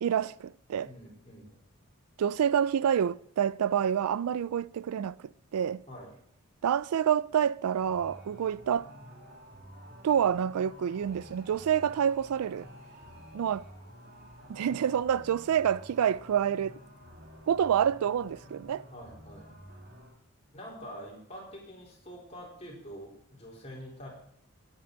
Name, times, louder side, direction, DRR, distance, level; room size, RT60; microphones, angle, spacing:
voice 1, 0.0-0.9 2.2-5.2 5.5-5.8 6.6-8.9 10.0-12.7 13.3-13.7 14.5-16.8 17.5-18.9, right 8 dB, 85° right, 0.3 m, -27 dB
voice 2, 0.8-1.6 5.9-6.1 14.7-14.9 18.9-19.5 20.5-24.1, equal, 30° left, 3.9 m, -46 dB
sound 1, 7.8-20.1, equal, 45° right, 2.7 m, -51 dB
18.0 x 8.7 x 3.9 m
head